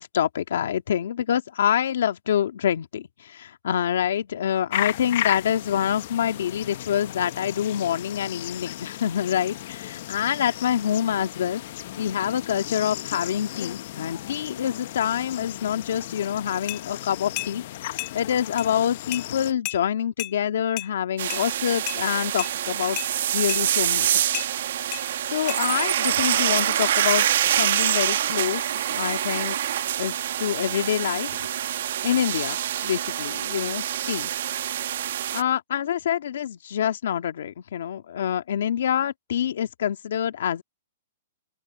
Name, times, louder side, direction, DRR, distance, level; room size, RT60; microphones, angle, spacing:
voice 1, 0.0-11.6 12.0-17.6 17.9-23.0 23.3-24.1 25.0-27.3 27.5-28.6 28.9-29.6 30.0-31.5 32.0-32.6 32.8-34.3 35.3-40.6, left 9 dB, 70° left, 1.9 m, -26 dB
sound 1, 4.7-19.5, left 14 dB, 50° left, 0.9 m, -35 dB
sound 2, 16.7-16.8 17.4-17.5 18.0-18.1 18.6-18.7 19.1-19.2 19.6-19.8 20.2-20.3 20.8-20.9 21.3-21.4 21.9-22.0 22.4-22.5 23.0-23.1 23.5-23.6 24.3-24.5 24.9-25.0 25.5-25.6, left 23 dB, 35° left, 3.5 m, -32 dB
sound 3, 21.2-35.4, right 11 dB, 65° right, 1.0 m, -26 dB
open air
hypercardioid pair, 150°, 0 cm